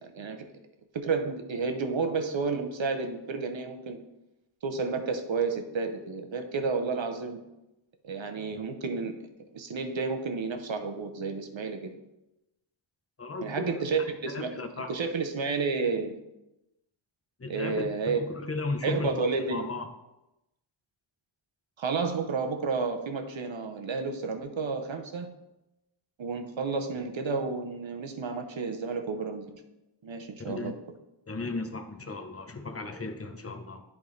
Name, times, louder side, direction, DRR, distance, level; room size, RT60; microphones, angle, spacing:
voice 1, 0.0-0.4 0.9-4.0 4.6-7.4 8.0-9.2 9.5-11.8 13.4-16.2 17.5-18.2 18.8-19.7 21.8-25.3 26.2-29.5 30.0-30.7, right 4 dB, 65° right, 6 dB, 0.9 m, -31 dB
voice 2, 13.2-13.8 14.3-14.9 17.4-19.9 30.4-30.7 31.3-33.8, left 3 dB, 30° left, 7 dB, 0.8 m, -35 dB
10.5 x 3.6 x 3.2 m, 0.93 s
wide cardioid pair, 60°, 50 cm